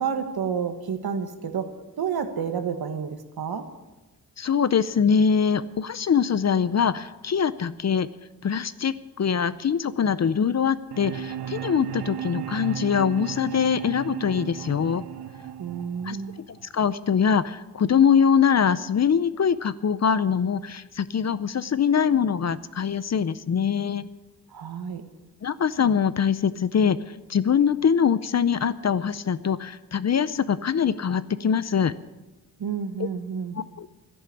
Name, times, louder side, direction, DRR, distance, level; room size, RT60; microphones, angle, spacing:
voice 1, 0.0-3.6 15.6-16.4 24.5-25.0 32.6-33.6, right 7 dB, 70° right, 8 dB, 1.6 m, -30 dB
voice 2, 4.4-8.1 8.4-15.0 16.0-16.4 16.7-24.0 25.4-27.0 27.3-31.9 33.6-33.9, left 7 dB, 45° left, 15 dB, 0.6 m, -23 dB
sound 1, 10.9-16.9, right 10 dB, 90° right, 0.8 m, -35 dB
13.0 x 10.5 x 8.5 m, 1.1 s
wide cardioid pair, 130°, 38 cm